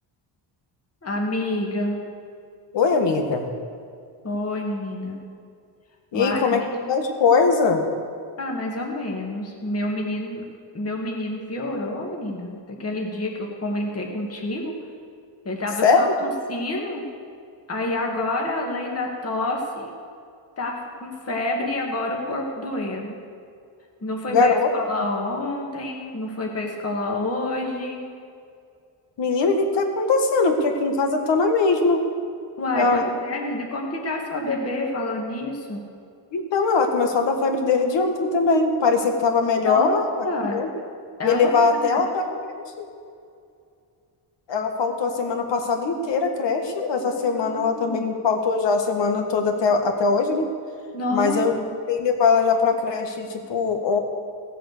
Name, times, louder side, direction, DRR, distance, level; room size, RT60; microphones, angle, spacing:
voice 1, 1.0-2.0 4.2-5.2 6.1-6.6 8.4-10.4 10.7-14.7 15.5-17.1 17.7-19.9 20.6-23.2 24.0-28.1 32.6-35.8 39.7-40.6 41.2-42.4 47.0-47.1 47.4-48.0 50.9-51.7, left 2 dB, 30° left, 0 dB, 2.0 m, -28 dB
voice 2, 2.7-3.5 6.1-6.6 6.9-7.8 15.8-16.1 24.3-24.7 29.2-32.0 32.8-33.1 36.3-40.3 40.5-40.7 41.2-42.9 44.5-50.5 51.1-51.5 51.9-54.0, left 4 dB, 65° left, 4 dB, 1.8 m, -21 dB
17.0 x 7.7 x 6.7 m, 2.3 s
cardioid pair, 115°, 47 cm